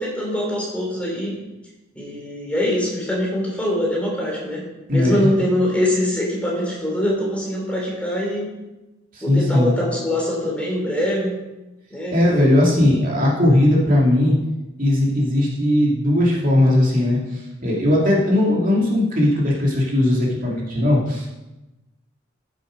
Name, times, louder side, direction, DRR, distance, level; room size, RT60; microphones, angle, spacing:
voice 1, 0.0-1.4 1.9-4.7 4.9-8.5 9.2-11.4 11.9-12.7, left 1 dB, 5° left, -3 dB, 3.6 m, -23 dB
voice 2, 4.9-5.3 9.1-9.7 12.1-14.3 14.8-21.4, left 1 dB, 40° right, -4 dB, 2.6 m, -18 dB
14.5 x 7.5 x 5.2 m, 1.0 s
head